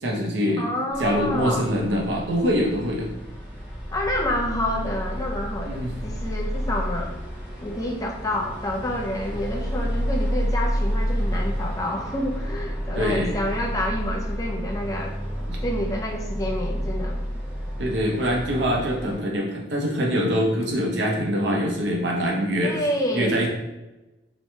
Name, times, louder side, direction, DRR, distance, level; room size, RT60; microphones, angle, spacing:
voice 1, 0.0-0.7 1.0-3.1 5.7-5.9 12.9-13.3 15.5-15.6 17.8-22.8 23.1-23.5, equal, 75° right, -1 dB, 0.6 m, -24 dB
voice 2, 0.6-1.7 3.9-7.2 7.6-15.1 15.6-17.2 22.6-23.3, left 1 dB, 20° left, 0 dB, 0.4 m, -28 dB
sound 1, 0.9-19.2, equal, 5° right, 0.8 m, -30 dB
3.0 x 2.1 x 2.7 m, 1.0 s
head